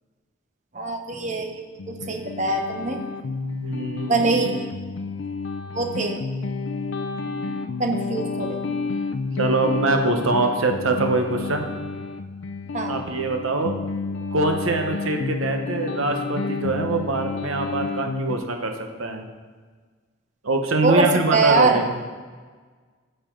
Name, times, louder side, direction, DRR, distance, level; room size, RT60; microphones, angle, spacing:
voice 1, 0.7-3.0 4.1-4.7 5.7-6.2 7.8-8.6 12.7-13.0 20.8-21.8, right 3 dB, 35° right, 5 dB, 0.8 m, -23 dB
sound 1, 1.8-18.4, left 4 dB, 70° left, 0.5 m, -30 dB
voice 2, 3.6-4.2 9.4-11.7 12.9-13.7 14.3-18.7 19.0-19.3 20.4-22.0, right 2 dB, 90° right, 4 dB, 0.9 m, -23 dB
11.5 x 6.7 x 3.8 m, 1.5 s
head